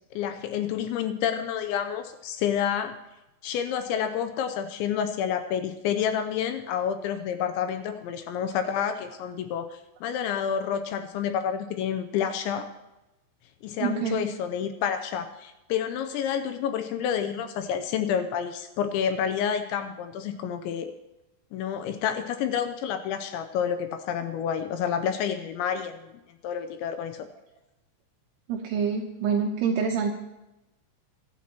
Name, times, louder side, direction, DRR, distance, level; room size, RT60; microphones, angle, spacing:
voice 1, 0.2-2.9 3.4-12.7 13.6-20.9 21.5-26.1 26.4-27.3, left 8 dB, 80° left, 9 dB, 2.7 m, -29 dB
voice 2, 13.8-14.3 28.5-30.1, right 6 dB, 80° right, 1 dB, 2.4 m, -26 dB
23.0 x 12.5 x 3.0 m, 0.96 s
omnidirectional pair, 5.9 m